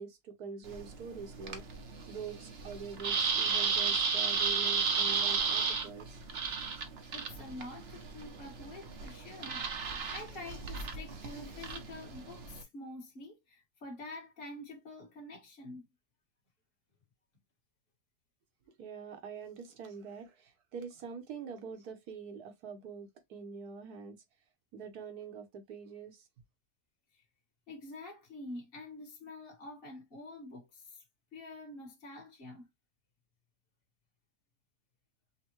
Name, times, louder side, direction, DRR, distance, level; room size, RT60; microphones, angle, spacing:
voice 1, 0.0-6.2 18.8-24.2 24.7-26.3, right 6 dB, 70° right, 1.3 m, -45 dB
sound 1, 0.6-12.6, right 5 dB, 50° right, 0.8 m, -34 dB
voice 2, 7.1-15.9 27.1-27.2 27.7-31.0 31.3-32.7, left 2 dB, 35° left, 1.5 m, -47 dB
5.4 x 2.2 x 2.9 m
omnidirectional pair, 1.7 m